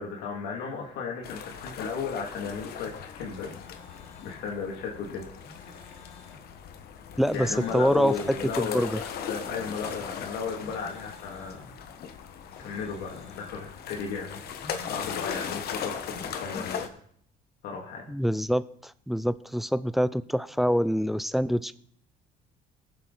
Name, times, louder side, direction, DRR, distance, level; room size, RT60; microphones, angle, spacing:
voice 1, 0.0-3.5 4.2-5.3 7.3-11.7 12.6-14.4 14.9-16.9 17.6-18.2, left 5 dB, 85° left, -1 dB, 2.1 m, -35 dB
sound 1, 1.2-16.9, left 7 dB, 70° left, 1.2 m, -39 dB
sound 2, 3.2-16.1, left 3 dB, 35° left, 3.2 m, -51 dB
voice 2, 7.2-8.1 8.6-9.0 18.1-21.8, equal, ahead, 15 dB, 0.4 m, -25 dB
19.5 x 7.4 x 3.9 m, 0.64 s
cardioid pair, 110°, 17 cm